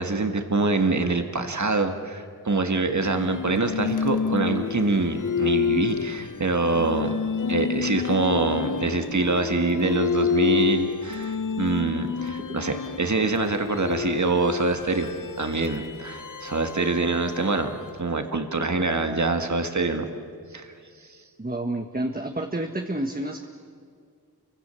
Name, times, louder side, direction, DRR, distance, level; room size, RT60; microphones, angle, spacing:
voice 1, 0.0-7.2 7.5-15.1 15.4-20.1 20.5-20.7, right 3 dB, 50° right, 6 dB, 1.8 m, -25 dB
sound 1, 3.0-18.1, left 7 dB, 55° left, 0.7 m, -29 dB
voice 2, 21.4-23.5, right 1 dB, 25° right, 3 dB, 1.4 m, -29 dB
29.5 x 24.5 x 7.0 m, 2.2 s
wide cardioid pair, 55°, 38 cm